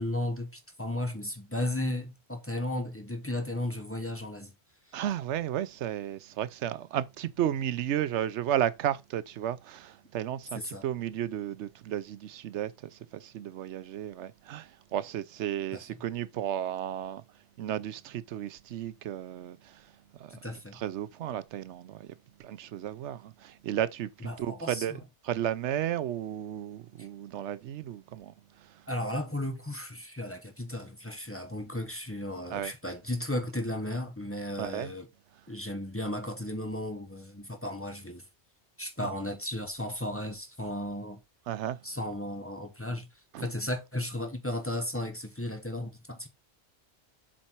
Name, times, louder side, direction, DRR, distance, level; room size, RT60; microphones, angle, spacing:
voice 1, 0.0-4.5 10.5-10.8 15.7-15.8 20.3-20.8 24.2-25.0 27.0-27.1 28.9-35.1 35.5-38.2 38.8-41.2 41.8-43.1 43.4-46.3, left 1 dB, 10° left, 1.1 m, -35 dB
voice 2, 4.9-17.2 17.6-19.8 20.2-20.4 20.7-22.1 22.4-25.0 25.2-28.3 28.6-28.7 32.5-32.7 34.6-34.9 41.5-41.8 43.3-43.4, right 11 dB, 85° right, 0.9 m, -33 dB
7.4 x 4.2 x 4.5 m
omnidirectional pair, 1.2 m